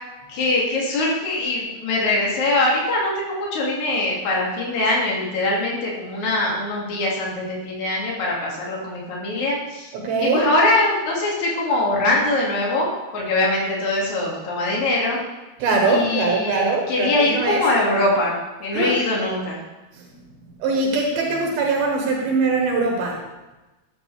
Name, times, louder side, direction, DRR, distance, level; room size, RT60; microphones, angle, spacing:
voice 1, 0.3-9.9 10.2-12.9 13.1-15.2 15.9-19.6, left 2 dB, 55° left, -4 dB, 3.4 m, -22 dB
voice 2, 9.9-10.4 15.6-17.6 18.7-19.0 19.9-20.1 20.6-23.2, right 3 dB, 80° right, 0 dB, 3.0 m, -22 dB
13.0 x 8.5 x 3.3 m, 1.1 s
omnidirectional pair, 4.3 m